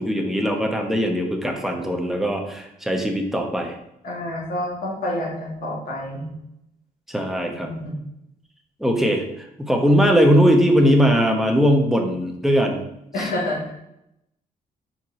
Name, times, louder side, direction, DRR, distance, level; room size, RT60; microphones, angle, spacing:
voice 1, 0.0-3.8 7.1-7.7 8.8-12.8 13.2-13.3, equal, ahead, 2 dB, 1.0 m, -20 dB
voice 2, 4.0-6.3 7.6-7.9 13.1-13.7, left 1 dB, 70° left, -4 dB, 2.4 m, -28 dB
4.6 x 4.6 x 5.7 m, 0.83 s
cardioid pair, 125°, 16 cm